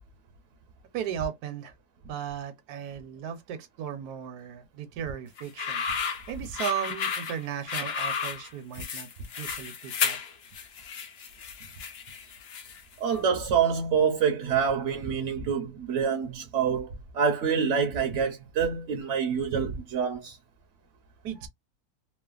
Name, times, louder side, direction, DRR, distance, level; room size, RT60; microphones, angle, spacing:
voice 1, 0.9-1.7 2.1-5.9 6.3-9.1 9.4-10.2 21.2-21.5, right 9 dB, 80° right, 1.2 m, -36 dB
sound 1, 5.4-12.9, left 6 dB, 60° left, 0.7 m, -33 dB
voice 2, 13.0-20.4, right 6 dB, 65° right, 0.8 m, -26 dB
3.1 x 2.0 x 2.3 m
omnidirectional pair, 1.6 m